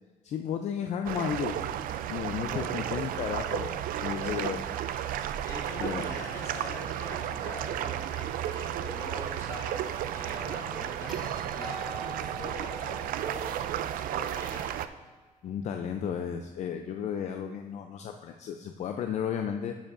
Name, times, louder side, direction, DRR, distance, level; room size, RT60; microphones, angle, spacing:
voice 1, 0.2-1.7 2.1-4.7 5.8-6.1 15.4-19.7, left 8 dB, 50° left, 5 dB, 0.4 m, -33 dB
sound 1, 1.1-14.9, right 11 dB, 75° right, 0.4 m, -33 dB
voice 2, 2.5-3.2 4.2-4.5 5.5-15.1, left 1 dB, 20° left, -5 dB, 2.2 m, -44 dB
sound 2, 11.1-15.4 17.6-17.7, equal, ahead, 1.2 m, -46 dB
9.9 x 7.2 x 2.5 m, 1.4 s
cardioid pair, 165°, 14 cm